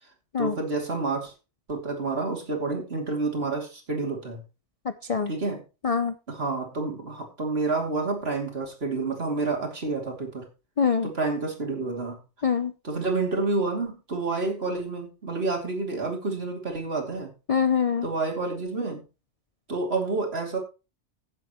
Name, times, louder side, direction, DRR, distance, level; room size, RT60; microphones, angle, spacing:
voice 1, 0.4-1.3 1.7-4.4 5.3-5.6 6.3-10.5 11.0-12.2 12.8-17.3 18.0-19.0 19.7-20.6, right 3 dB, 55° right, 1 dB, 2.9 m, -29 dB
voice 2, 4.8-5.3 5.8-6.1 10.8-11.1 12.4-12.7 17.5-18.1, left 6 dB, 45° left, 10 dB, 0.5 m, -24 dB
16.0 x 7.6 x 3.0 m, 0.30 s
omnidirectional pair, 1.3 m